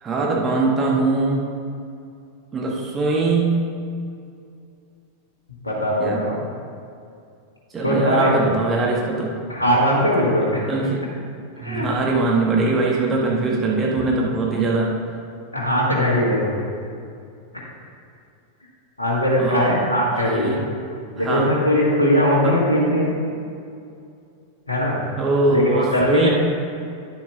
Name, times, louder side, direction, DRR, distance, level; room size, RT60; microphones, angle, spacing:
voice 1, 0.0-1.4 2.5-3.6 6.0-6.3 7.7-9.3 10.7-11.0 11.6-14.9 19.4-19.8 20.2-20.6 21.2-21.5 22.4-22.5 25.2-26.3, right 3 dB, 20° right, -2 dB, 1.1 m, -21 dB
voice 2, 5.6-6.4 7.8-8.4 9.5-10.6 11.6-11.9 15.5-16.7 17.5-17.7 19.0-20.5 21.1-23.1 24.7-25.0 25.5-26.3, equal, 80° left, -4 dB, 1.4 m, -20 dB
9.9 x 7.2 x 3.4 m, 2.4 s
figure-of-eight pair, 90°, 0 cm